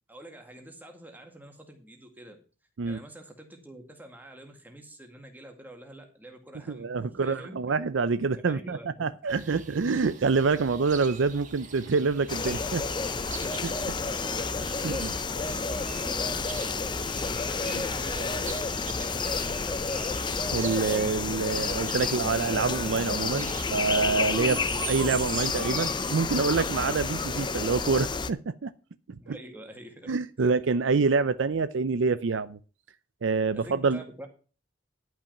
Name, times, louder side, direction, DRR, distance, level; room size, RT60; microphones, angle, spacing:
voice 1, 0.1-2.4 2.9-7.8 8.3-9.1 14.0-18.5 18.8-20.1 29.2-30.5 33.5-34.3, right 1 dB, 10° right, 1.9 m, -46 dB
voice 2, 6.7-12.8 13.6-13.9 14.8-15.1 20.5-28.7 29.1-29.4 30.1-32.6 33.2-34.0, right 4 dB, 75° right, 0.5 m, -27 dB
sound 1, 9.3-27.4, right 6 dB, 40° right, 1.4 m, -42 dB
sound 2, 12.3-28.3, left 4 dB, 25° left, 0.5 m, -30 dB
11.0 x 5.8 x 5.9 m
head